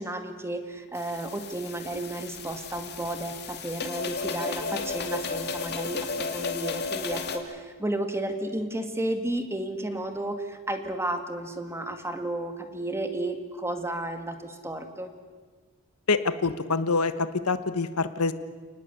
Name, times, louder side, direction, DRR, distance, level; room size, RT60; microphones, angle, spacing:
voice 1, 0.0-15.1, right 1 dB, 10° right, 6 dB, 2.1 m, -32 dB
sound 1, 1.0-7.4, left 4 dB, 50° left, 2.7 m, -34 dB
voice 2, 16.1-18.3, left 4 dB, 80° left, 11 dB, 1.3 m, -26 dB
29.5 x 19.5 x 8.3 m, 1.4 s
head